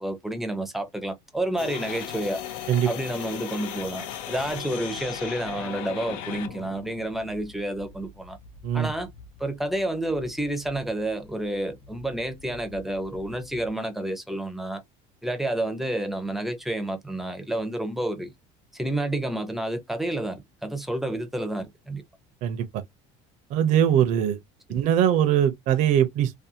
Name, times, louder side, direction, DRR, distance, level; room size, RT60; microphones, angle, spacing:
voice 1, 0.0-2.4 2.9-8.4 8.7-9.1 9.4-14.8 15.2-18.3 18.7-22.0 24.7-24.8, right 1 dB, ahead, 0.5 m, -30 dB
sound 1, 1.6-13.7, left 9 dB, 85° left, 0.6 m, -39 dB
voice 2, 23.5-24.4 24.7-26.4, right 10 dB, 55° right, 0.5 m, -21 dB
2.5 x 2.3 x 2.7 m
cardioid pair, 145°, 16 cm